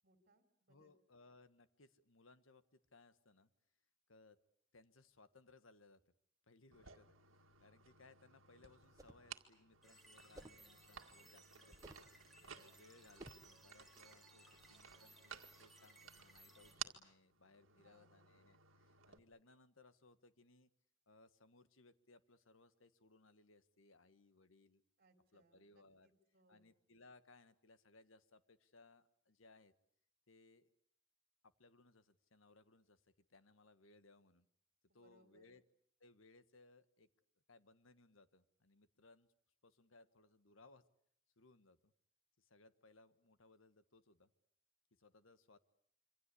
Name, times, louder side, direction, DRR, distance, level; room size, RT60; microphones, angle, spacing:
voice 1, 0.0-1.0 17.6-18.4 25.0-26.7 34.9-35.5, right 1 dB, 50° right, 6 dB, 3.9 m, -73 dB
voice 2, 0.7-3.5 4.1-4.4 4.7-6.0 6.5-12.1 12.4-20.7 21.1-24.8 25.3-26.1 26.5-29.7 30.3-30.7 31.4-34.5 34.9-35.6 36.0-37.1 37.5-39.3 39.6-40.8 41.4-41.9 42.4-44.3 45.0-45.6, left 3 dB, 85° left, 12 dB, 1.5 m, -66 dB
sound 1, 6.7-19.2, right 8 dB, 85° right, 2.0 m, -56 dB
sound 2, 8.8-9.3 10.3-10.7 11.7-12.1 13.2-13.5, right 1 dB, 20° right, 1.5 m, -56 dB
sound 3, 9.8-16.7, right 2 dB, ahead, 6.7 m, -64 dB
27.0 x 25.0 x 8.4 m, 0.66 s
head